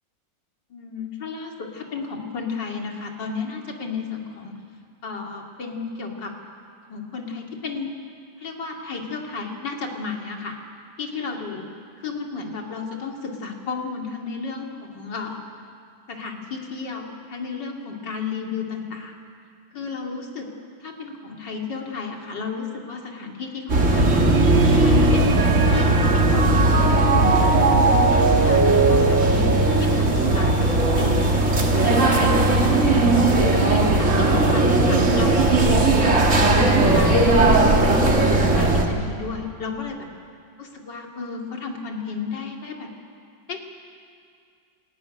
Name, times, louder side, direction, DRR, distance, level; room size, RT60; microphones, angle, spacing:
voice 1, 0.7-4.6 5.0-6.3 6.9-7.9 8.4-10.6 11.0-11.7 12.0-15.4 16.1-19.1 19.7-20.5 20.8-24.3 24.8-27.5 28.1-30.7 31.0-32.9 33.5-36.1 36.5-40.1 40.6-42.9 43.5-43.6, left 4 dB, 65° left, 1 dB, 3.0 m, -33 dB
sound 1, 23.7-38.9, right 2 dB, 40° right, 2.3 m, -18 dB
Mallet percussion, 24.1-30.5, right 4 dB, 75° right, 2.1 m, -23 dB
26.0 x 14.5 x 9.9 m, 2.3 s
omnidirectional pair, 2.0 m